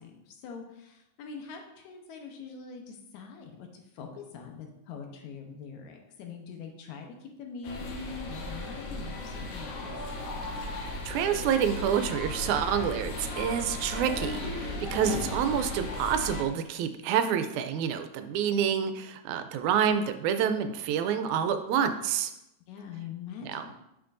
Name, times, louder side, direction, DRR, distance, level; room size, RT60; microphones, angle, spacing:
voice 1, 0.0-9.9 22.7-23.8, left 6 dB, 80° left, 2 dB, 2.2 m, -43 dB
sound 1, 7.6-16.4, left 2 dB, 60° left, 1.9 m, -36 dB
voice 2, 11.1-22.3 23.5-23.6, right 8 dB, 80° right, 9 dB, 1.9 m, -28 dB
8.0 x 6.4 x 2.6 m, 0.86 s
omnidirectional pair, 3.4 m